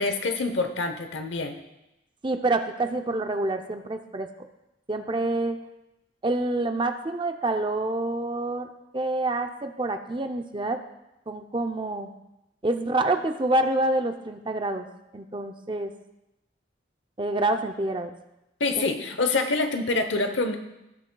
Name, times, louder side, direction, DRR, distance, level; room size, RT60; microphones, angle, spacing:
voice 1, 0.0-1.6 18.6-20.6, left 3 dB, 80° left, 7 dB, 0.9 m, -26 dB
voice 2, 2.2-4.3 4.9-5.6 6.2-8.7 8.9-10.8 11.3-12.1 12.6-14.9 15.1-15.9 17.2-18.1 18.8-18.9, right 2 dB, 25° right, 6 dB, 0.5 m, -27 dB
17.5 x 6.4 x 2.3 m, 0.92 s
head